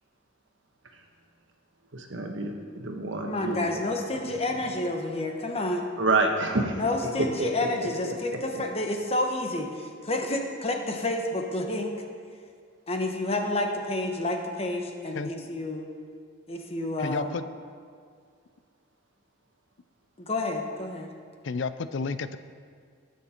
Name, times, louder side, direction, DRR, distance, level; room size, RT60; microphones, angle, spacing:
voice 1, 1.9-3.7 6.0-6.8 7.2-7.7 8.0-8.6, right 2 dB, 70° right, 1.3 m, -28 dB
voice 2, 3.2-5.9 6.7-11.9 12.9-15.9 16.5-17.4 20.2-21.1, left 2 dB, 30° left, 1.1 m, -29 dB
voice 3, 17.0-17.4 21.4-22.4, left 4 dB, 70° left, 0.5 m, -31 dB
19.0 x 6.6 x 4.4 m
head